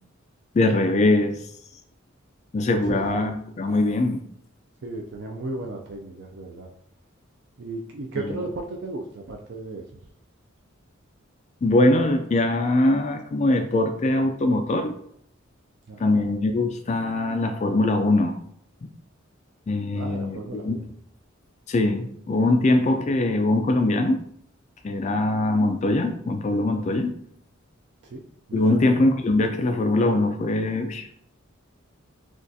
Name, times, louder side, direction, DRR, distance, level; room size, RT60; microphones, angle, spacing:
voice 1, 0.5-1.5 2.5-4.2 8.2-8.4 11.6-14.9 16.0-18.4 18.8-18.9 19.7-20.8 21.7-24.2 24.8-27.1 28.5-31.1, left 2 dB, 35° left, 5 dB, 0.3 m, -22 dB
voice 2, 2.9-3.3 4.8-6.7 7.6-9.8 15.9-16.2 19.9-20.9 28.1-28.2 28.5-28.9, right 2 dB, 55° right, 1 dB, 0.5 m, -35 dB
6.2 x 2.3 x 2.7 m, 0.68 s
head